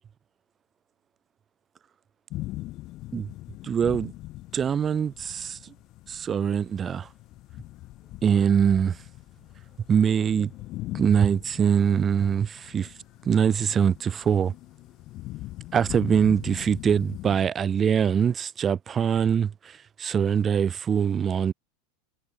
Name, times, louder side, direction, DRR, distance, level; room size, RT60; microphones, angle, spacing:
sound 1, 2.3-17.5, left 17 dB, 45° left, 1.6 m, -41 dB
voice 1, 3.6-4.1 4.5-5.7 6.1-7.1 8.2-9.0 9.9-10.5 10.9-12.9 13.2-14.5 15.7-21.5, right 7 dB, 25° right, 1.1 m, -23 dB
supercardioid pair, 135°, 0 cm